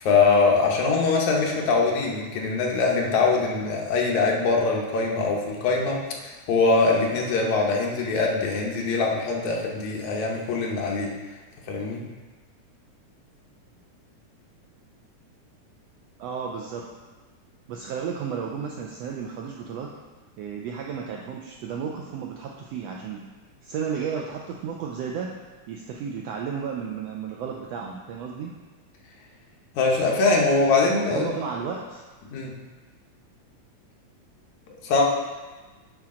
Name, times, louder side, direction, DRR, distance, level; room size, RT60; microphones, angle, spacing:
voice 1, 0.0-11.1 11.7-12.0 29.8-31.3 32.3-32.5 34.8-35.0, left 3 dB, 75° left, -1 dB, 2.3 m, -22 dB
voice 2, 16.2-16.9 17.7-19.9 20.4-23.2 23.6-25.3 25.7-28.5 31.1-32.0, right 6 dB, 85° right, 0 dB, 1.5 m, -33 dB
10.0 x 5.2 x 3.7 m, 1.3 s
omnidirectional pair, 3.5 m